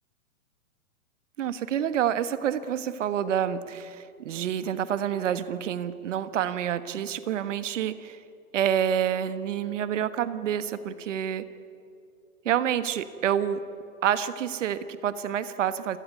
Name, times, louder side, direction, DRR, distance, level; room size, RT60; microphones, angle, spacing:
voice 1, 1.4-8.2 8.5-11.5 12.4-13.6 14.0-16.0, right 9 dB, 55° right, 13 dB, 1.6 m, -28 dB
28.5 x 17.5 x 9.6 m, 2.6 s
figure-of-eight pair, 110°, 43 cm